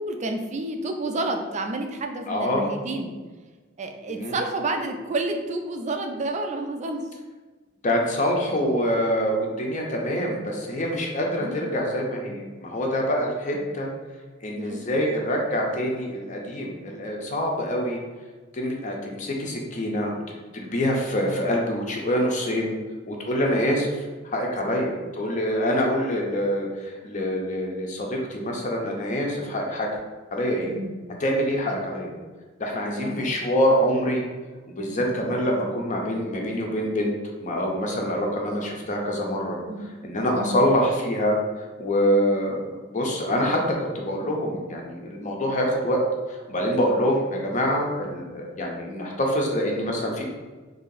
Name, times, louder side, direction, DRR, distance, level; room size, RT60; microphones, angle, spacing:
voice 1, 0.0-3.1 3.8-7.1 11.3-11.8 12.3-12.5 14.6-15.1 30.7-31.1 31.7-31.8 32.9-33.3 34.9-35.4 39.7-39.9 40.3-40.6, right 2 dB, 35° right, 5 dB, 0.4 m, -30 dB
voice 2, 2.3-2.7 4.1-4.4 7.8-13.9 14.4-18.0 18.5-22.8 23.1-29.9 30.3-30.7 31.2-32.2 32.6-34.2 34.8-37.1 37.4-39.6 40.0-41.4 41.8-46.0 46.3-50.2, equal, 40° left, 0 dB, 0.6 m, -25 dB
3.0 x 2.7 x 3.9 m, 1.3 s
head